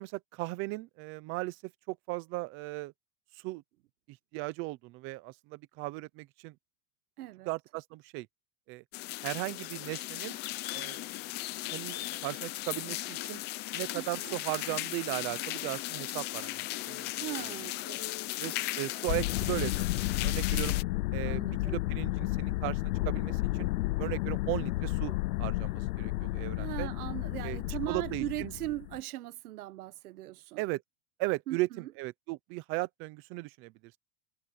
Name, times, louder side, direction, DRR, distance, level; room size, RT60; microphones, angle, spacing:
voice 1, 0.0-1.6 1.9-2.9 3.4-3.6 4.3-6.5 7.5-8.3 8.7-8.8 9.2-10.4 10.7-11.0 11.7-13.4 13.7-16.6 16.9-17.1 17.4-17.5 17.9-18.0 18.4-20.8 21.1-23.7 24.0-25.1 25.4-26.9 27.4-27.6 27.9-28.5 30.6-30.8 31.2-31.7 32.0-33.7, right 21 dB, 30° right, 0.7 m, -36 dB
voice 2, 7.2-7.5 13.9-14.4 17.1-17.8 21.2-21.8 26.6-30.6 31.5-31.9, right 17 dB, 90° right, 1.2 m, -39 dB
sound 1, 8.9-20.8, left 17 dB, 25° left, 0.6 m, -37 dB
sound 2, 19.1-29.0, left 19 dB, 80° left, 0.6 m, -32 dB
supercardioid pair, 170°, 43 cm